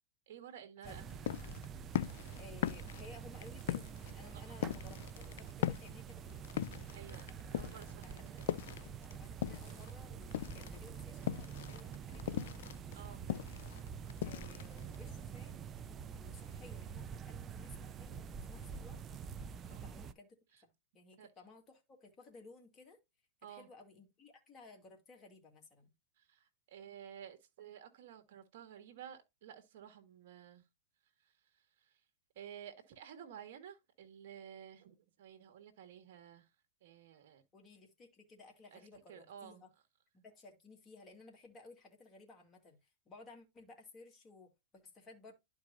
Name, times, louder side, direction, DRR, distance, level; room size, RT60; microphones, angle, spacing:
voice 1, 0.3-1.0 4.3-4.4 6.9-8.5 12.9-13.2 19.7-19.9 21.2-21.3 23.4-23.7 26.2-30.6 32.3-36.5 36.8-37.4 38.7-38.8 39.1-39.6, right 9 dB, 65° right, 1.7 m, -53 dB
sound 1, 0.8-20.1, right 7 dB, 30° right, 0.5 m, -47 dB
sound 2, 0.9-9.9 10.2-15.2, left 12 dB, 70° left, 0.5 m, -39 dB
voice 2, 2.4-6.5 7.0-7.2 8.0-13.4 14.2-19.0 19.6-20.4 20.6-23.0 23.4-25.9 37.5-39.7 40.1-45.3, left 3 dB, 25° left, 2.5 m, -58 dB
11.5 x 4.8 x 2.6 m
hypercardioid pair, 115°, 0 cm